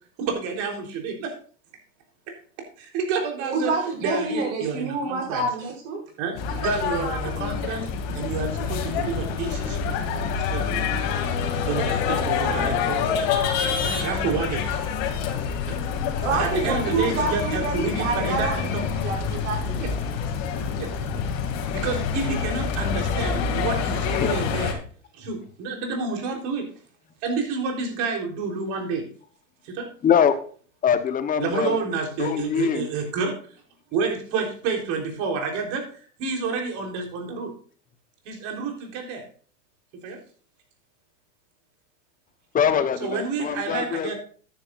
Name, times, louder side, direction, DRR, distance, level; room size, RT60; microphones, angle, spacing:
voice 1, 0.2-1.3 2.8-3.7 4.0-5.5 6.2-7.9 8.1-10.0 10.4-10.7 11.5-13.1 13.8-14.7 15.6-15.8 16.3-18.9 19.8-19.9 20.8-20.9 21.7-24.8 25.1-26.7 27.2-29.1 29.6-29.9 31.4-33.4 33.9-37.5 38.2-39.2 40.0-40.2 43.0-44.1, right 4 dB, 45° right, 2 dB, 3.9 m, -29 dB
voice 2, 3.4-6.0 6.6-7.0 16.2-20.0, right 3 dB, 70° right, 0 dB, 6.1 m, -28 dB
sound 1, 6.4-24.7, left 6 dB, 50° left, 2.6 m, -27 dB
voice 3, 30.0-30.4 30.8-31.8 32.2-32.9 42.5-44.1, left 8 dB, 20° left, 10 dB, 1.1 m, -23 dB
13.0 x 10.5 x 2.6 m, 0.43 s
hypercardioid pair, 125°, 40 cm